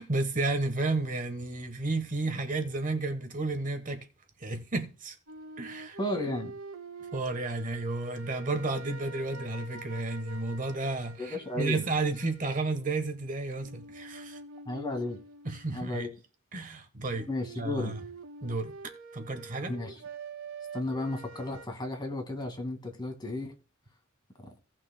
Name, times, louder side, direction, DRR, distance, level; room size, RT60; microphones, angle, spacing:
voice 1, 0.0-4.0 4.4-5.1 5.6-6.0 7.1-14.4 15.4-16.1 16.5-17.3 17.6-18.0 18.4-18.7 19.1-19.7, right 2 dB, 40° right, 1.2 m, -32 dB
sound 1, 5.3-13.2 13.5-15.7 17.1-21.7, right 3 dB, 80° right, 0.9 m, -46 dB
voice 2, 6.0-6.5 11.2-11.8 14.7-15.2 15.7-16.1 17.3-18.0 19.7-19.9 20.7-23.5 24.4-24.5, left 1 dB, 20° left, 2.0 m, -33 dB
17.5 x 6.0 x 2.2 m
head